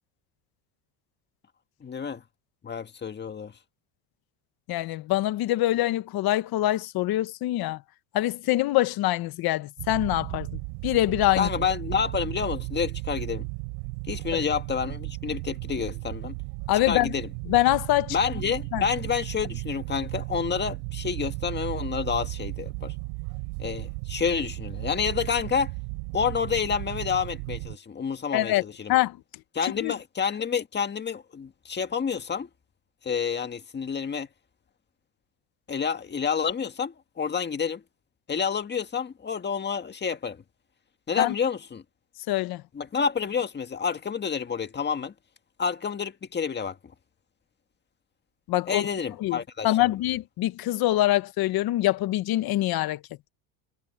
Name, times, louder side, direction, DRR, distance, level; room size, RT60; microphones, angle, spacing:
voice 1, 1.8-2.2 2.6-3.5 11.4-13.5 14.1-16.4 16.9-17.3 18.1-22.9 23.6-25.7 26.1-28.9 29.5-32.5 33.0-34.3 35.7-37.8 38.3-40.4 41.1-41.8 42.7-45.1 45.6-46.8 48.7-49.9, left 6 dB, 25° left, 1.8 m, -29 dB
voice 2, 4.7-7.8 8.1-11.5 14.3-14.4 16.7-17.1 17.5-18.2 18.7-18.8 28.3-28.6 28.9-29.2 29.8-29.9 41.2-41.3 42.3-42.6 48.5-48.9 49.2-53.0, left 15 dB, 55° left, 1.3 m, -24 dB
sound 1, 9.8-27.8, right 36 dB, 90° right, 4.4 m, -35 dB
cardioid pair, 125°, 44 cm